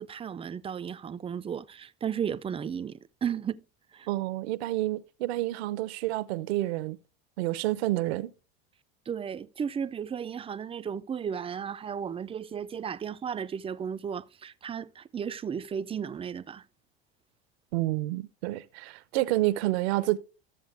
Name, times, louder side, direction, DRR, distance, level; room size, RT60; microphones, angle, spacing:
voice 1, 0.0-3.6 3.9-4.1 9.1-16.6, right 7 dB, 20° right, 0.4 m, -34 dB
voice 2, 4.1-7.0 7.4-8.3 17.7-20.2, right 17 dB, 80° right, 0.8 m, -29 dB
13.0 x 7.2 x 3.3 m
supercardioid pair, 100°, 32 cm